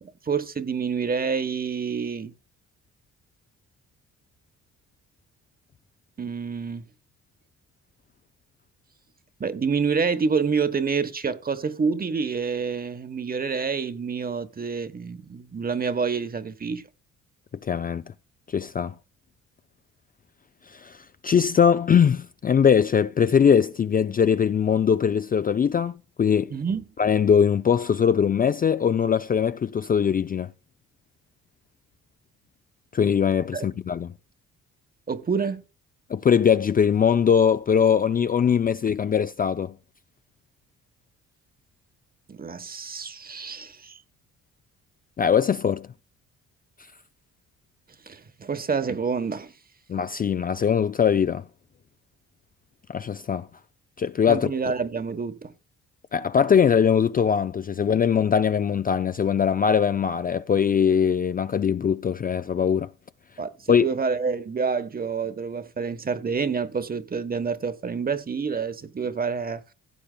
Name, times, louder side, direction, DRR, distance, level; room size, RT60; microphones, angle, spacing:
voice 1, 0.0-2.3 6.2-6.9 9.4-16.8 26.5-26.9 33.5-33.7 35.1-35.6 42.3-44.0 48.1-49.5 54.3-55.5 63.4-69.6, right 5 dB, 30° right, 1.1 m, -28 dB
voice 2, 17.6-18.0 18.5-18.9 20.7-21.0 21.2-26.5 27.0-30.5 32.9-34.1 36.1-39.7 45.2-45.9 49.9-51.4 52.9-53.5 54.0-54.5 56.1-62.9 63.7-63.9, left 7 dB, 30° left, 0.4 m, -21 dB
16.5 x 8.5 x 2.3 m
cardioid pair, 90°, 30 cm